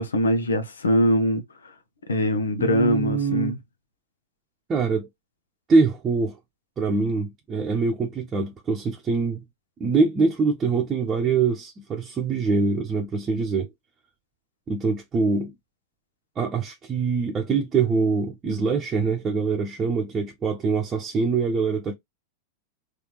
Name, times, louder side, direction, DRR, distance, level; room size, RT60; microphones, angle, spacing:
voice 1, 0.0-1.4 2.1-3.6, equal, 75° left, 0.8 m, -22 dB
voice 2, 2.6-3.6 4.7-5.1 5.7-6.4 6.8-9.5 9.8-13.7 14.7-15.5 16.4-21.9, right 4 dB, 25° right, 0.8 m, -24 dB
3.4 x 3.3 x 3.0 m
figure-of-eight pair, 90°, 0 cm